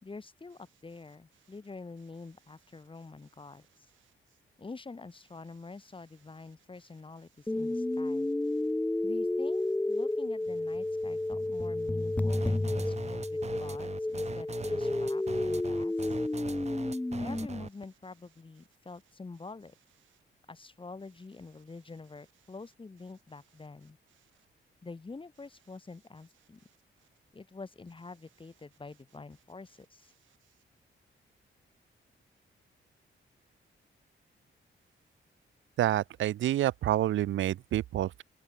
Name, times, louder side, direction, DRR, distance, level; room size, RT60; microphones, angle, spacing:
voice 1, 0.0-3.9 4.6-8.3 9.0-16.1 17.2-19.7 20.5-24.0 24.8-26.6 27.3-30.1, left 3 dB, 25° left, 3.6 m, -47 dB
sound 1, 7.5-17.5, left 2 dB, 5° left, 0.3 m, -31 dB
sound 2, 12.3-17.8, right 5 dB, 30° right, 1.1 m, -41 dB
voice 2, 35.8-38.2, right 13 dB, 70° right, 0.4 m, -28 dB
open air
wide cardioid pair, 140°, 21 cm